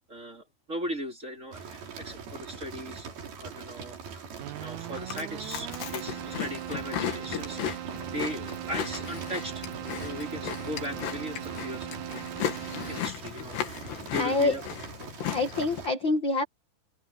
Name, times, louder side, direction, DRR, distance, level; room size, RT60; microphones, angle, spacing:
voice 1, 0.1-3.1 3.4-4.3 4.6-9.7 10.0-12.0 12.6-14.6, equal, 20° right, 3.3 m, -38 dB
sound 1, 1.5-15.9, right 6 dB, 65° right, 5.7 m, -43 dB
Keyboard (musical), 4.4-13.4, right 14 dB, 80° right, 1.7 m, -40 dB
Chewing mastication, 5.0-15.8, left 9 dB, 80° left, 4.2 m, -36 dB
voice 2, 14.2-14.6 15.2-16.4, left 3 dB, 45° left, 1.6 m, -26 dB
open air
omnidirectional pair, 4.7 m